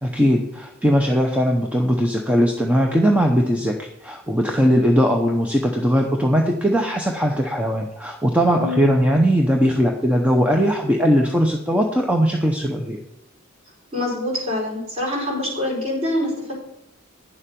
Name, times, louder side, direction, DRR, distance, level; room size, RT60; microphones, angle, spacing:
voice 1, 0.0-13.0, equal, 5° right, 2 dB, 0.7 m, -19 dB
voice 2, 8.5-8.9 13.9-16.5, left 1 dB, 30° right, -4 dB, 4.7 m, -25 dB
9.9 x 7.2 x 5.2 m, 0.85 s
head